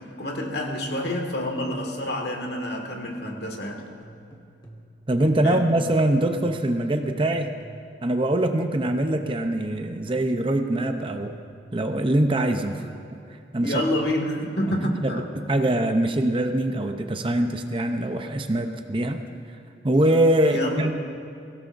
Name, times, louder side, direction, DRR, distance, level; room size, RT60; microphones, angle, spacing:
voice 1, 0.0-3.8 5.4-5.6 13.6-15.3 19.9-20.1 20.4-20.9, left 1 dB, 60° left, 2 dB, 1.9 m, -28 dB
sound 1, 4.0-8.1 8.9-10.4 11.0-12.5, right 1 dB, 25° left, 1.3 m, -47 dB
voice 2, 5.1-7.5 8.0-11.3 11.7-12.9 13.5-13.8 14.7-19.2 19.8-20.9, right 1 dB, 30° right, 6 dB, 0.7 m, -23 dB
23.5 x 16.5 x 2.6 m, 2.5 s
head